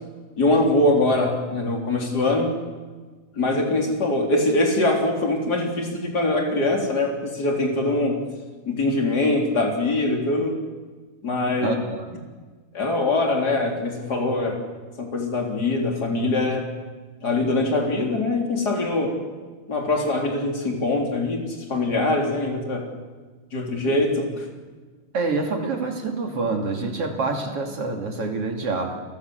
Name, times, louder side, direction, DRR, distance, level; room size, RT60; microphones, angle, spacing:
voice 1, 0.4-2.5 3.4-8.2 8.7-10.6 11.2-11.8 12.7-14.6 15.0-16.7 17.2-19.2 19.7-22.9 23.5-24.5, left 2 dB, 25° left, 2 dB, 3.8 m, -23 dB
voice 2, 11.6-12.2 25.1-29.0, right 3 dB, 40° right, 3 dB, 3.1 m, -27 dB
29.5 x 19.5 x 8.0 m, 1.4 s
omnidirectional pair, 4.8 m